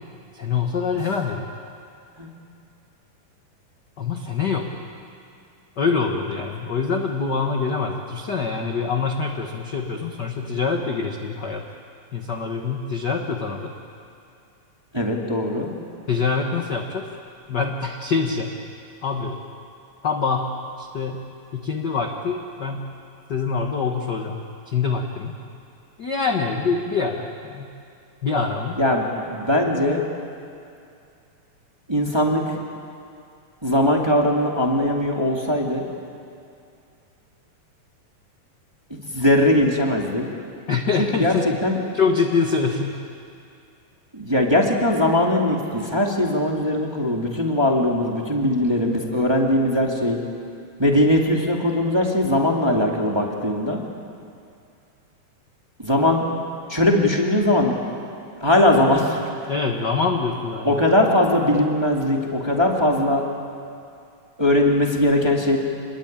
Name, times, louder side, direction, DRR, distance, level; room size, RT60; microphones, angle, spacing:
voice 1, 0.3-1.5 4.0-4.7 5.8-11.6 12.1-13.7 16.1-17.1 17.5-18.5 19.0-19.4 20.0-20.5 20.8-21.2 21.5-22.9 23.3-25.4 26.0-27.7 28.2-28.8 40.7-41.6 41.9-43.0 59.5-60.8, left 5 dB, 55° left, 2 dB, 1.1 m, -25 dB
voice 2, 14.9-15.7 28.8-30.0 31.9-32.6 33.6-35.8 38.9-40.3 41.0-41.3 41.6-41.8 44.1-50.2 50.8-53.8 55.8-56.3 56.7-57.8 58.4-59.3 60.6-63.2 64.4-65.6, left 1 dB, 10° right, 0 dB, 1.8 m, -20 dB
27.0 x 21.5 x 8.9 m, 2.5 s
omnidirectional pair, 4.0 m